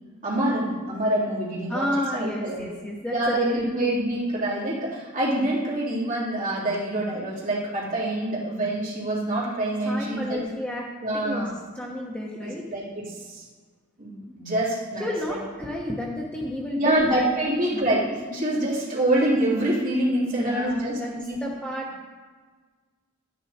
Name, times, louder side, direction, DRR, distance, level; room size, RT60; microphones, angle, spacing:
voice 1, 0.2-1.9 2.1-2.6 3.1-10.4 11.0-11.5 12.4-13.4 14.0-15.4 16.8-21.4, right 1 dB, 40° right, -6 dB, 3.3 m, -26 dB
voice 2, 1.7-3.7 9.8-10.8 11.1-11.5 11.7-12.6 15.0-17.8 20.3-21.1 21.4-22.0, left 1 dB, 5° left, -3 dB, 1.1 m, -31 dB
11.5 x 9.4 x 4.3 m, 1.5 s
head